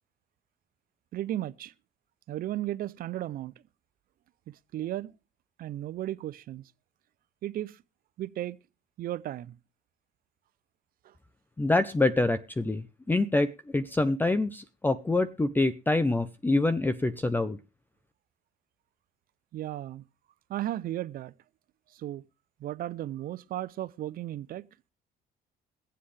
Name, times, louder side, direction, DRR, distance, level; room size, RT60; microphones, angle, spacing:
voice 1, 1.1-1.7 2.3-3.5 4.7-5.1 5.6-6.6 7.4-7.8 8.2-8.6 9.0-9.6 11.0-11.1 19.5-20.0 20.5-21.3 21.9-22.2 22.6-24.6, right 13 dB, 60° right, 0.6 m, -35 dB
voice 2, 11.6-17.6, left 2 dB, 10° left, 0.6 m, -26 dB
22.5 x 7.6 x 3.3 m
cardioid pair, 110°, 17 cm